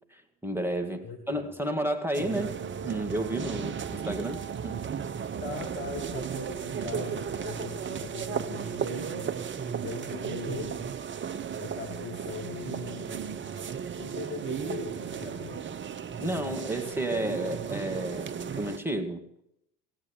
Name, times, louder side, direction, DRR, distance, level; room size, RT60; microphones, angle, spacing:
voice 1, 0.1-4.8 16.2-19.2, right 1 dB, 5° right, 4 dB, 1.8 m, -32 dB
voice 2, 1.0-1.5 5.4-9.4 9.8-10.9 11.6-13.6 14.0-15.7, left 4 dB, 60° left, 3 dB, 2.3 m, -40 dB
sound 1, 2.1-18.8, right 7 dB, 25° right, 0.7 m, -35 dB
sound 2, 5.2-8.1 8.5-9.8 10.1-10.3, right 1 dB, 75° left, 6.3 m, -56 dB
16.5 x 8.8 x 7.2 m, 0.79 s
figure-of-eight pair, 60°, 50 cm